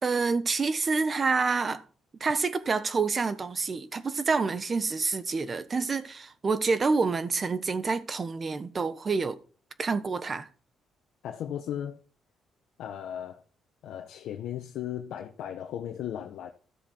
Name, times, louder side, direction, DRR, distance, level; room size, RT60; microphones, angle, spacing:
voice 1, 0.0-1.8 2.2-9.4 9.8-10.5, right 4 dB, 35° right, 1.3 m, -27 dB
voice 2, 11.2-12.0 12.8-13.4 13.8-16.5, left 10 dB, 80° left, 1.1 m, -36 dB
13.5 x 7.4 x 4.5 m
cardioid pair, 90°, 0 cm